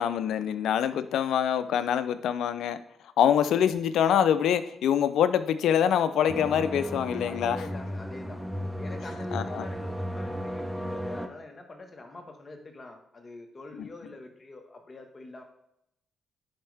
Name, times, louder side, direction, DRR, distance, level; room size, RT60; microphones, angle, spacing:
voice 1, 0.0-2.8 3.2-7.6 9.3-9.6 13.8-13.9, left 9 dB, 80° left, 13 dB, 0.5 m, -25 dB
sound 1, 6.3-11.3, equal, 5° right, 1.0 m, -34 dB
voice 2, 7.3-8.4 8.8-15.4, left 2 dB, 40° left, 4 dB, 1.6 m, -44 dB
10.5 x 5.3 x 3.5 m, 0.79 s
supercardioid pair, 55°, 0 cm